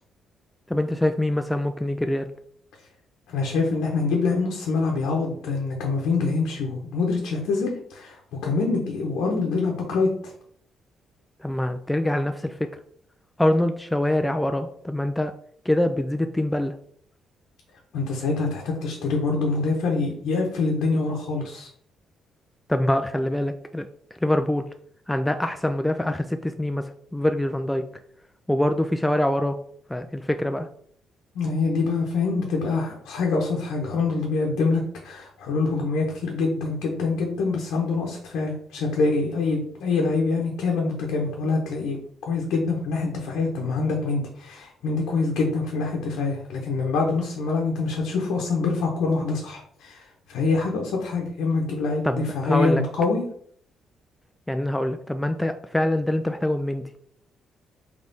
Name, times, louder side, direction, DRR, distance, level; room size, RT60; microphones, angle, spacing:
voice 1, 0.7-2.3 11.4-12.7 13.4-15.3 15.7-16.7 22.7-23.9 24.2-24.6 25.1-27.9 28.5-29.6 29.9-30.7 52.0-52.8 54.5-57.0, left 1 dB, 5° left, 7 dB, 0.3 m, -24 dB
voice 2, 3.3-10.3 17.9-21.7 31.3-42.0 42.2-53.2, left 3 dB, 85° left, -1 dB, 0.8 m, -25 dB
3.5 x 3.2 x 3.9 m, 0.62 s
cardioid pair, 90°, 0 cm